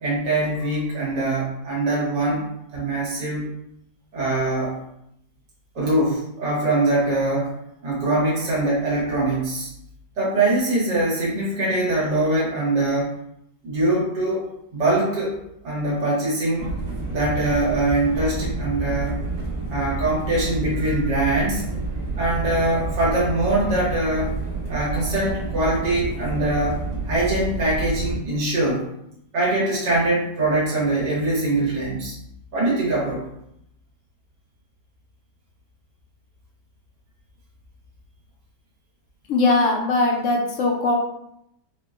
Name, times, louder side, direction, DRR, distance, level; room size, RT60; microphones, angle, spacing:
voice 1, 0.0-3.5 4.1-4.8 5.7-7.5 7.8-9.7 10.2-13.2 13.6-14.5 14.7-15.4 15.6-16.7 17.1-19.2 19.7-21.6 22.2-24.3 24.7-28.8 29.3-32.1 32.5-33.2, right 2 dB, 85° right, -6 dB, 1.7 m, -23 dB
sound 1, 16.6-28.2, right 3 dB, 55° right, 1.5 m, -29 dB
voice 2, 39.3-40.9, left 2 dB, 65° left, 0 dB, 0.8 m, -20 dB
4.4 x 2.0 x 2.4 m, 0.76 s
omnidirectional pair, 1.8 m